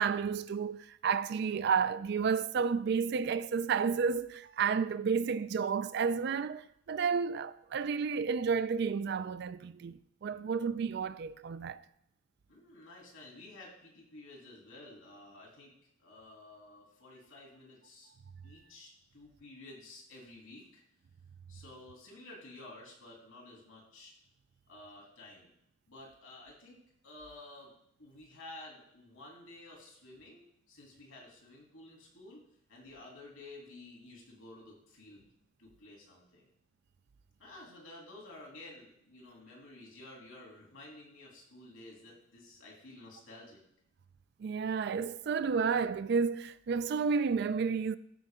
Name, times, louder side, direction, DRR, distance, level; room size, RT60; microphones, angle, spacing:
voice 1, 0.0-11.8 44.4-48.0, right 6 dB, 50° right, 0.3 m, -31 dB
voice 2, 12.5-15.7 16.0-18.1 18.4-20.8 21.5-24.1 24.7-25.5 25.9-26.8 27.0-27.7 28.0-32.4 32.7-35.3 35.6-36.5 37.4-43.6, left 2 dB, 85° left, 2.9 m, -52 dB
13.0 x 4.8 x 3.7 m
head